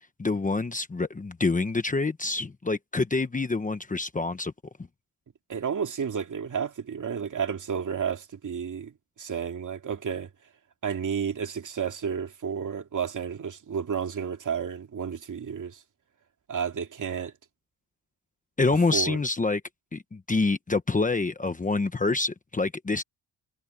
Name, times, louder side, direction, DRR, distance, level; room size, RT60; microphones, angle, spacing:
voice 1, 0.2-4.5 18.6-19.6 19.9-23.0, left 3 dB, 20° left, 1.1 m, -26 dB
voice 2, 5.5-10.3 10.8-15.8 16.5-17.3 18.9-19.2, right 7 dB, 50° right, 2.8 m, -31 dB
wide cardioid pair, 145°, 40 cm